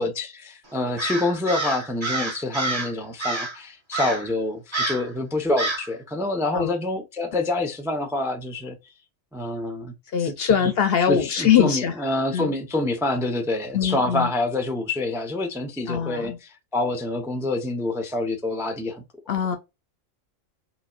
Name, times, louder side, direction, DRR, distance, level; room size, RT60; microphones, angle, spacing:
voice 1, 0.0-8.8 9.3-9.9 10.2-10.7 11.0-19.0, left 2 dB, 5° right, 0.3 m, -27 dB
Crow, 1.0-2.9 3.2-3.6 3.9-4.3 4.7-5.1 5.6-5.9, right 2 dB, 25° right, 1.2 m, -28 dB
voice 2, 10.1-12.0 12.3-12.5 13.7-14.3 15.9-16.4 19.3-19.6, left 8 dB, 65° left, 0.7 m, -22 dB
4.1 x 3.0 x 2.3 m
omnidirectional pair, 1.3 m